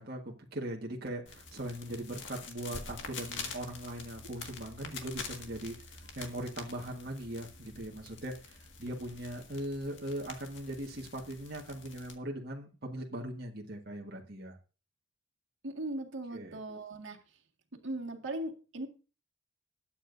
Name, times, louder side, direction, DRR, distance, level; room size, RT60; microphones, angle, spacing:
voice 1, 0.0-14.6 16.3-16.6, right 1 dB, 50° right, -1 dB, 1.6 m, -40 dB
sound 1, 1.3-12.2, left 5 dB, 70° left, 1.9 m, -46 dB
voice 2, 15.6-17.2 17.8-18.9, right 1 dB, 75° right, 1 dB, 1.9 m, -38 dB
20.5 x 8.8 x 2.6 m, 0.34 s
head